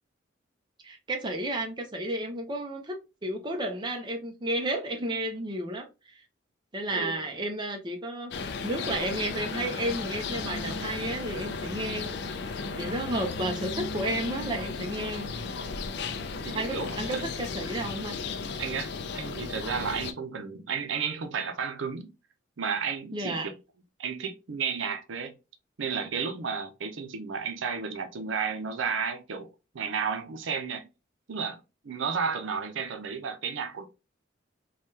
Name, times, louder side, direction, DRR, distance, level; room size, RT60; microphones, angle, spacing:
voice 1, 0.8-5.9 6.7-8.3 8.6-12.1 12.4-15.3 16.5-18.2 23.1-23.5, right 1 dB, 25° right, 0.5 m, -32 dB
voice 2, 6.9-7.3 16.4-17.3 18.6-18.9 19.1-22.1 22.6-23.4 24.0-25.3 25.8-29.5 29.7-30.8 31.3-33.9, right 6 dB, 80° right, 0.5 m, -32 dB
sound 1, 8.3-20.1, left 4 dB, 60° left, 0.4 m, -35 dB
3.2 x 2.2 x 2.7 m
head